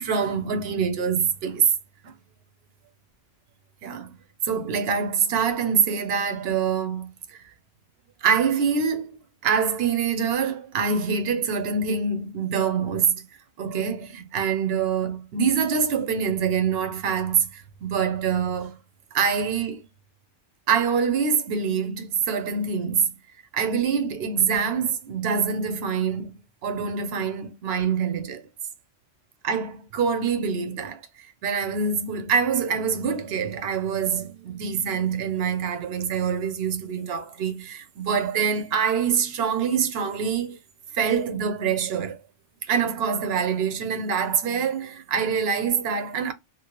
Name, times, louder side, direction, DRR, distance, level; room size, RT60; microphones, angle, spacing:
voice 1, 0.0-1.7 2.0-2.1 3.8-4.1 4.4-7.4 8.2-9.2 9.4-13.2 13.6-18.8 19.1-19.8 20.7-23.0 23.5-26.3 26.6-28.4 29.4-31.0 31.4-40.6 40.9-42.2 42.7-46.3, right 6 dB, 60° right, 0.9 m, -25 dB
3.0 x 2.3 x 2.9 m
omnidirectional pair, 1.3 m